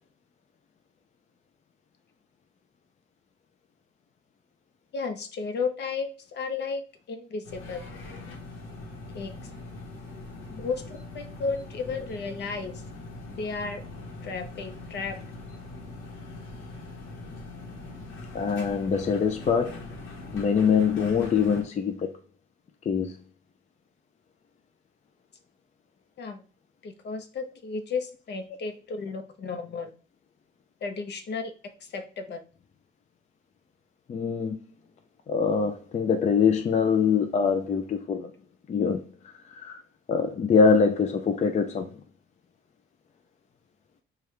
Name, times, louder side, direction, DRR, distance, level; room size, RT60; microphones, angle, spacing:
voice 1, 4.9-6.8 7.1-7.8 9.1-9.3 10.5-12.8 13.3-13.8 14.2-15.2 26.2-26.4 26.8-29.9 30.8-31.5 31.8-32.4, left 4 dB, 60° left, 0.8 m, -33 dB
sound 1, 7.4-21.6, left 2 dB, 80° left, 1.0 m, -42 dB
voice 2, 18.3-19.8 20.3-22.1 22.9-23.2 34.1-34.6 35.3-38.3 38.7-39.8 40.1-42.0, left 6 dB, 35° left, 0.4 m, -24 dB
4.7 x 2.4 x 3.2 m
cardioid pair, 90°, 20 cm